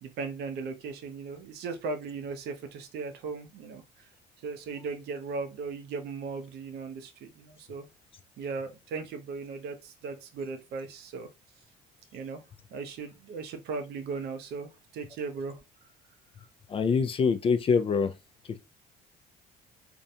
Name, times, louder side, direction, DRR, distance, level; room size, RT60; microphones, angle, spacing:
voice 1, 0.0-3.8 4.4-7.9 8.4-11.3 12.1-12.4 12.7-15.6, right 4 dB, 75° right, 0.6 m, -37 dB
voice 2, 16.7-18.1, left 5 dB, 35° left, 0.4 m, -24 dB
2.5 x 2.1 x 2.7 m
cardioid pair, 110°, 17 cm